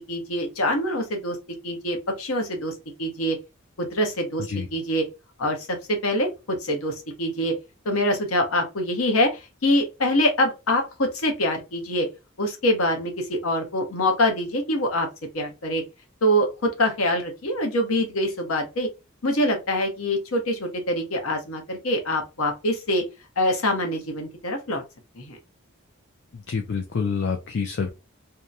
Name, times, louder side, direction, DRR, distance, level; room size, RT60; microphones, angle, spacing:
voice 1, 0.1-1.4 1.6-2.7 3.0-3.4 3.8-5.1 5.4-5.6 5.9-7.5 7.8-12.1 12.4-15.1 15.3-15.8 16.2-18.9 19.2-23.0 23.4-24.8 25.2-25.4, left 1 dB, 80° left, 0.9 m, -24 dB
voice 2, 26.5-27.9, left 5 dB, 55° left, 0.4 m, -27 dB
2.8 x 2.1 x 2.4 m
head